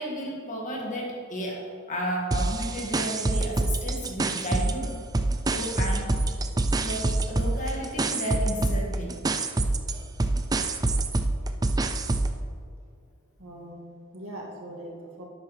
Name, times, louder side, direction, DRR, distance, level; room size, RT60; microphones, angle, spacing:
voice 1, 0.0-5.0 5.5-6.4 6.8-9.2, equal, 40° left, -2 dB, 2.0 m, -33 dB
sound 1, 2.3-4.9 5.1-12.4, right 2 dB, 20° right, 0.4 m, -26 dB
voice 2, 13.4-15.2, right 1 dB, 85° right, -1 dB, 2.0 m, -41 dB
11.5 x 8.4 x 3.3 m, 2.2 s
head